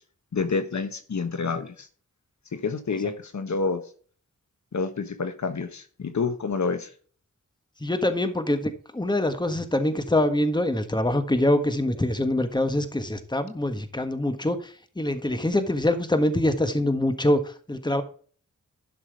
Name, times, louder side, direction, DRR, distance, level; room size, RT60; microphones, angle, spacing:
voice 1, 0.3-1.9 2.5-3.8 4.7-6.9, left 4 dB, 65° left, 1.3 m, -28 dB
voice 2, 7.8-18.0, left 1 dB, 15° left, 1.5 m, -24 dB
11.5 x 6.1 x 4.7 m
wide cardioid pair, 65°, 30 cm